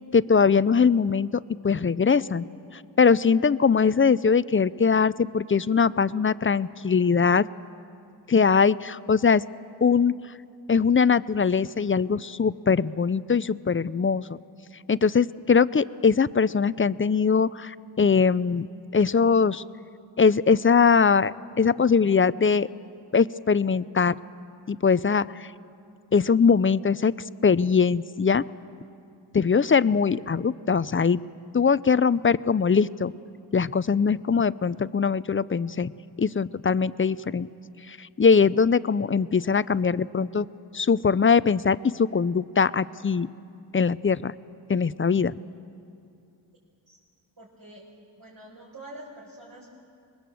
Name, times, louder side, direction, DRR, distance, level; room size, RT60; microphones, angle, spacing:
voice 1, 0.1-1.3 1.6-2.5 3.0-7.4 8.3-9.4 9.8-10.1 10.7-14.3 14.9-19.6 20.2-22.7 23.1-24.1 24.7-25.5 26.1-27.1 27.4-28.4 29.3-31.2 31.5-33.1 33.5-35.9 36.2-37.5 37.9-40.5 40.7-43.3 43.7-44.3 44.7-45.4, left 5 dB, 25° left, 17 dB, 0.5 m, -21 dB
voice 2, 47.4-47.8 48.2-49.7, right 1 dB, 50° right, -5 dB, 5.1 m, -45 dB
23.5 x 20.5 x 7.7 m, 2.5 s
cardioid pair, 45°, 46 cm